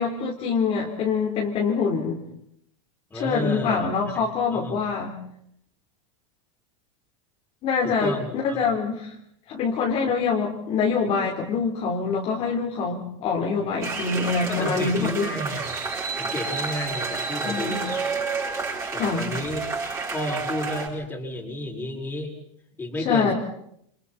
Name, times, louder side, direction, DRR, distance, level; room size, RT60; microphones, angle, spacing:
voice 1, 0.0-2.2 3.1-5.2 7.6-9.1 9.5-15.4 17.4-17.8 19.0-19.2 23.0-23.3, left 5 dB, 35° left, -2 dB, 4.0 m, -25 dB
voice 2, 3.1-4.8 7.8-8.7 14.5-15.7 16.2-18.4 18.9-19.6 20.1-22.3 22.8-23.3, left 1 dB, 10° left, 0 dB, 6.1 m, -32 dB
sound 1, 13.8-20.9, right 4 dB, 15° right, 7.8 m, -30 dB
29.5 x 29.5 x 4.4 m, 0.72 s
supercardioid pair, 150°, 18 cm